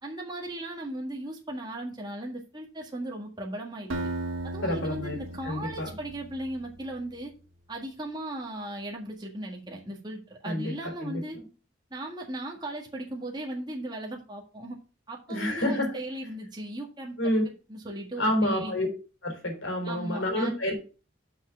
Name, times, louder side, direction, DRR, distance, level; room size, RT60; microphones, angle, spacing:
voice 1, 0.0-3.9 4.4-7.3 7.7-11.4 11.9-14.8 15.1-17.1 17.7-18.7 19.8-20.5, right 1 dB, 20° right, 0 dB, 1.7 m, -37 dB
Acoustic guitar, 3.9-6.9, right 2 dB, 85° right, 1.5 m, -36 dB
voice 2, 4.6-5.2 5.4-5.9 10.4-11.4 15.3-15.9 17.2-17.4 18.2-18.9 19.2-20.7, left 1 dB, 80° left, 2 dB, 3.7 m, -28 dB
6.2 x 6.0 x 5.8 m, 0.34 s
head